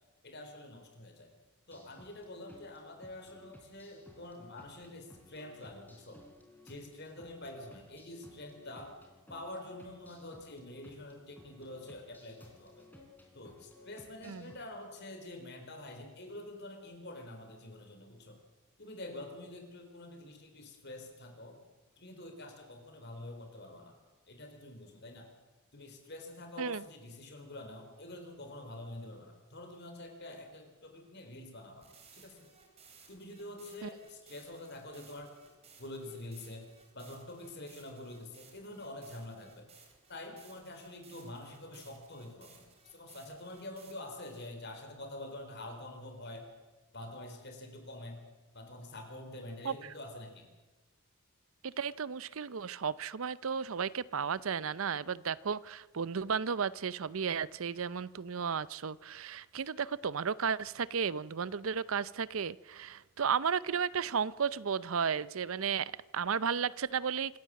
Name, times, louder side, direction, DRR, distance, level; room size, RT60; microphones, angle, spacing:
voice 1, 0.2-1.3 1.7-6.2 6.6-9.0 9.3-12.9 13.3-18.4 18.8-21.6 22.0-24.0 24.3-25.3 25.7-32.5 33.1-35.4 35.8-39.7 40.1-46.5 46.9-48.2 48.5-50.5, left 1 dB, 50° left, 5 dB, 4.2 m, -47 dB
sound 1, 1.7-14.6, left 1 dB, 10° left, 3.7 m, -58 dB
sound 2, 31.8-44.5, right 5 dB, 30° right, 3.9 m, -60 dB
voice 2, 51.6-67.4, right 6 dB, 70° right, 19 dB, 0.6 m, -34 dB
26.0 x 14.5 x 7.6 m, 1.2 s
head